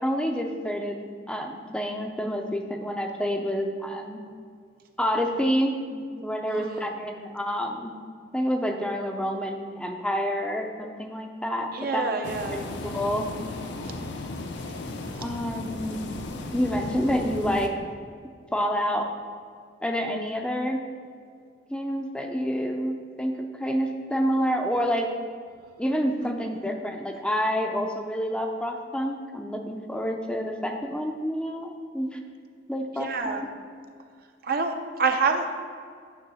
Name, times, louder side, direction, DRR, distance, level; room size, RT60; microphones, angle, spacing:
voice 1, 0.0-4.2 5.0-7.9 8.3-13.3 15.2-16.0 16.5-17.7 18.5-19.1 19.8-20.8 21.7-25.1 25.8-32.2 32.7-33.5, equal, 5° left, 3 dB, 0.5 m, -28 dB
voice 2, 6.5-6.9 11.7-12.6 26.2-26.3 33.0-33.4 34.5-35.5, right 4 dB, 55° right, 5 dB, 0.6 m, -27 dB
sound 1, 12.2-17.7, left 2 dB, 70° left, 0.6 m, -35 dB
9.4 x 3.2 x 6.2 m, 2.1 s
head